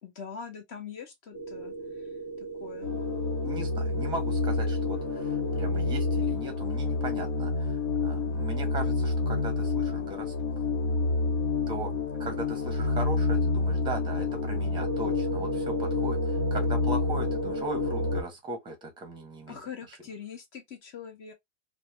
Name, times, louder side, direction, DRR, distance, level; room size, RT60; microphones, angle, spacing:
voice 1, 0.0-1.7 2.4-3.0 19.5-21.3, left 6 dB, 35° left, 1.0 m, -43 dB
sound 1, 1.3-18.2, left 3 dB, 70° left, 0.9 m, -28 dB
voice 2, 3.4-10.3 11.7-11.9 12.2-19.6, right 2 dB, 10° right, 0.9 m, -38 dB
2.7 x 2.1 x 3.2 m
supercardioid pair, 145°, 37 cm